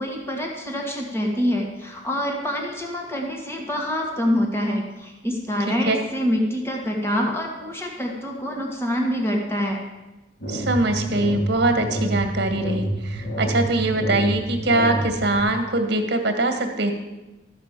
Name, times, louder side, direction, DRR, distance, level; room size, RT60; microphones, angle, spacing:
voice 1, 0.0-9.8, equal, 15° left, 0 dB, 1.7 m, -26 dB
sound 1, 10.4-15.4, right 1 dB, 70° left, 2.3 m, -28 dB
voice 2, 10.5-16.9, right 2 dB, 65° right, 6 dB, 1.6 m, -22 dB
13.5 x 5.5 x 7.6 m, 1.1 s
head